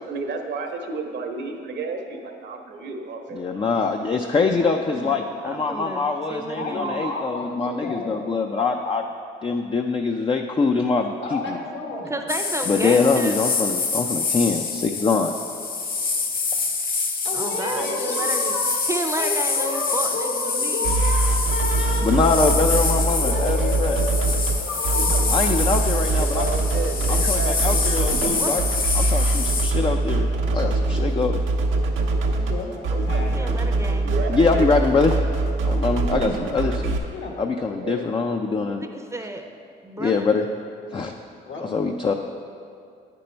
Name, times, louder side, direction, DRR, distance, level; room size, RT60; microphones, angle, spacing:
voice 1, 0.0-3.7 17.7-18.4 26.1-27.8 34.0-34.7 37.5-38.0, right 3 dB, 65° right, 4 dB, 0.9 m, -32 dB
voice 2, 3.3-9.0 9.4-11.6 12.7-15.4 22.0-24.0 25.3-26.5 27.1-28.6 28.9-30.3 30.5-31.4 32.1-32.2 34.3-35.1 35.6-37.1 37.4-38.8 40.0-40.5 40.9-41.2 41.6-42.1, left 4 dB, 25° left, 4 dB, 0.4 m, -23 dB
voice 3, 4.4-7.0 12.1-13.4 17.3-18.5 18.9-21.0 28.4-28.5 31.9-32.0 32.9-34.2 38.8-39.4 39.8-40.4, right 2 dB, 15° right, 4 dB, 0.6 m, -32 dB
voice 4, 6.5-8.2 11.2-12.2 17.2-18.7 19.2-21.2 21.5-22.5 23.1-25.2 32.4-33.7 37.1-37.3 37.7-37.9 41.5-41.7, left 2 dB, 70° left, 0 dB, 1.6 m, -31 dB
sound 1, 12.3-29.7, left 4 dB, 45° left, 0.8 m, -26 dB
sound 2, 20.8-37.0, right 2 dB, 90° right, 0.8 m, -23 dB
9.4 x 5.3 x 4.4 m, 2.4 s
cardioid pair, 90°, 20 cm